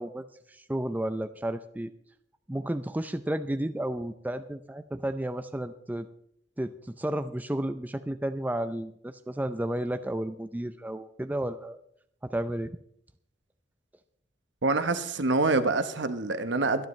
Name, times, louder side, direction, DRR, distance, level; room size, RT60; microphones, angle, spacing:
voice 1, 0.0-1.9 2.5-6.1 6.6-11.8 12.2-12.7, right 1 dB, 10° right, 10 dB, 0.4 m, -32 dB
voice 2, 14.6-16.9, right 3 dB, 65° right, 10 dB, 1.1 m, -26 dB
23.5 x 10.5 x 3.2 m, 0.69 s
head